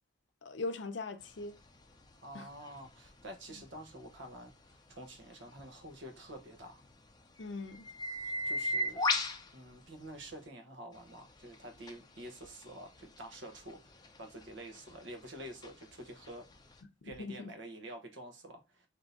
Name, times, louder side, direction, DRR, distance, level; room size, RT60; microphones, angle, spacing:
voice 1, 0.4-1.5 2.3-2.5 7.4-7.9 17.2-17.5, left 3 dB, 65° left, 0.6 m, -40 dB
sound 1, 1.2-10.5 10.9-16.8, left 2 dB, 20° left, 0.5 m, -40 dB
voice 2, 2.2-6.8 8.4-9.0 9.5-13.8 14.2-16.5 17.0-18.9, right 1 dB, 70° right, 1.0 m, -48 dB
3.6 x 2.8 x 3.9 m
head